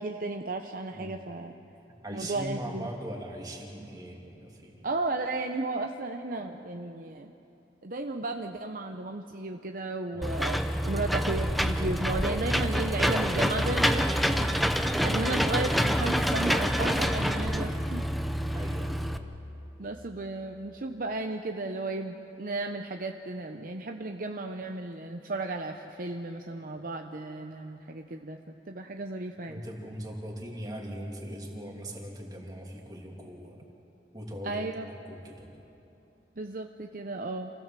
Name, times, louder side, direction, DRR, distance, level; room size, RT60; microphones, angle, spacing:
voice 1, 0.0-1.5 2.1-2.9 4.8-7.3 7.8-14.5 15.0-18.1 19.8-28.4 28.7-29.6 34.4-34.9 36.4-37.5, right 2 dB, 50° right, 5 dB, 0.7 m, -34 dB
voice 2, 2.0-4.8 10.1-10.3 18.5-19.1 29.5-33.6 34.1-35.5, equal, 20° right, 0 dB, 2.7 m, -40 dB
Engine / Mechanisms, 10.2-19.2, equal, ahead, 0.7 m, -27 dB
27.5 x 16.0 x 7.5 m, 3.0 s
head